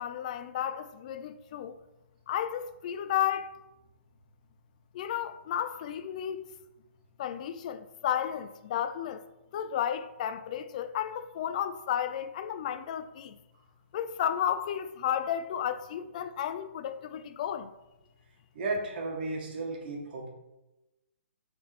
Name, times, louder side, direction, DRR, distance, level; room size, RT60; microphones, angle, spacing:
voice 1, 0.0-1.8 2.3-3.5 4.9-6.4 7.2-9.2 9.5-13.4 13.9-17.7, left 10 dB, 35° left, 0.4 m, -33 dB
voice 2, 18.5-20.3, right 3 dB, 45° right, 1.9 m, -34 dB
7.5 x 4.3 x 4.3 m
hypercardioid pair, 160°, 7 cm